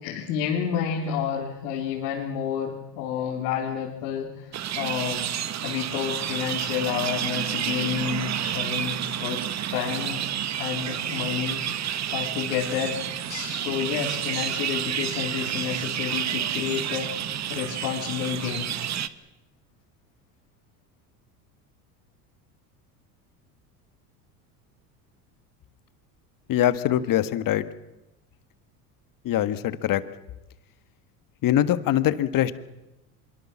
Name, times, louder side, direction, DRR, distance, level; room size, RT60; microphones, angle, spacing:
voice 1, 0.0-5.3 5.6-9.4 9.7-10.2 10.6-13.0 13.3-18.7, left 8 dB, 80° left, -2 dB, 3.8 m, -30 dB
sound 1, 4.5-19.1, right 10 dB, 35° right, 1.3 m, -30 dB
voice 2, 26.5-27.6 29.2-30.0 31.4-32.6, left 12 dB, 45° left, 13 dB, 1.6 m, -23 dB
24.5 x 23.0 x 7.4 m, 0.99 s
hypercardioid pair, 90°, 45 cm